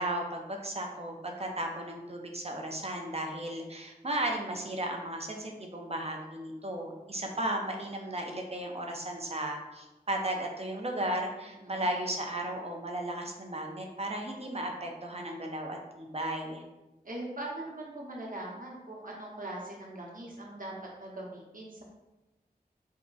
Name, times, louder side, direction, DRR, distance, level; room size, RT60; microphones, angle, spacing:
voice 1, 0.0-16.6, right 1 dB, 40° right, 2 dB, 0.6 m, -35 dB
voice 2, 11.5-11.9 17.0-20.7 21.0-21.8, right 1 dB, 55° right, -3 dB, 1.0 m, -41 dB
3.6 x 2.2 x 3.8 m, 1.1 s
wide cardioid pair, 50°, 16 cm